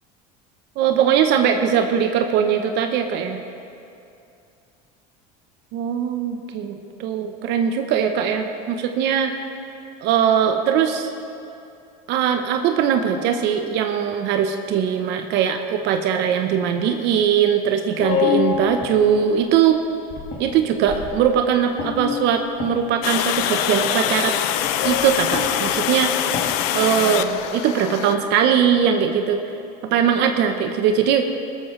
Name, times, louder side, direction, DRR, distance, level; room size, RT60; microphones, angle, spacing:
voice 1, 0.8-3.4 5.7-9.4 10.0-11.1 12.1-19.8 20.4-24.4 24.8-26.4 26.7-29.4 29.9-31.3, right 8 dB, 60° right, 6 dB, 0.9 m, -20 dB
sound 1, 18.0-19.5 20.1-21.4 21.8-23.1 23.4-23.8 24.6-27.5, left 8 dB, 45° left, 2.3 m, -28 dB
Water, 23.0-28.2, left 11 dB, 75° left, 0.7 m, -24 dB
18.5 x 13.5 x 3.2 m, 2.6 s
supercardioid pair, 100°, 20 cm